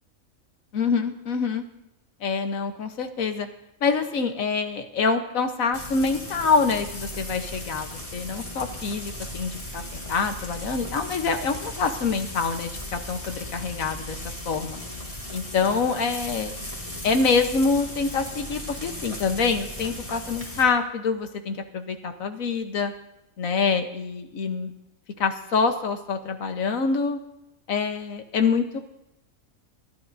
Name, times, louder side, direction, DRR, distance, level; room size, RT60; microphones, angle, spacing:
voice 1, 0.7-1.6 2.2-3.5 3.8-14.2 14.4-14.8 15.3-16.5 17.0-22.9 23.4-24.7 25.2-27.2 27.7-28.8, left 5 dB, 75° left, 7 dB, 1.4 m, -26 dB
Frying (food), 5.7-20.6, left 1 dB, 25° left, 2.0 m, -37 dB
27.0 x 10.5 x 2.7 m, 0.86 s
omnidirectional pair, 1.4 m